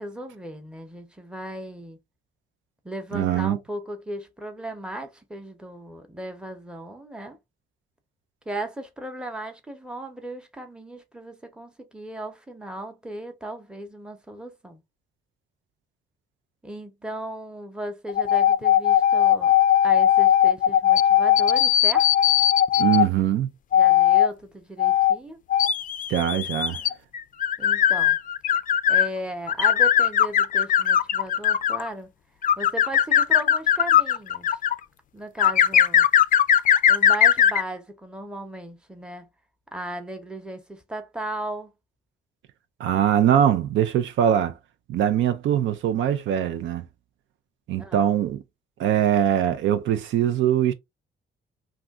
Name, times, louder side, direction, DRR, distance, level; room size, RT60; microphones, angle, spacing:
voice 1, 0.0-2.0 2.8-7.4 8.5-14.8 16.6-19.5 19.8-22.1 23.7-25.4 27.6-28.2 28.9-32.1 32.6-34.6 35.1-36.1 36.9-39.3 39.7-41.7 47.8-48.1, right 1 dB, 5° right, 0.8 m, -36 dB
voice 2, 3.1-3.6 22.8-23.5 26.1-26.8 42.8-44.6 44.9-46.8 47.7-48.4 48.8-50.7, right 10 dB, 75° right, 0.5 m, -22 dB
sound 1, 18.1-23.0 23.7-24.3 24.8-25.1 25.5-29.1 29.5-31.9 32.4-34.7 35.4-37.6, left 10 dB, 45° left, 0.4 m, -19 dB
2.5 x 2.3 x 3.5 m
cardioid pair, 90°, 20 cm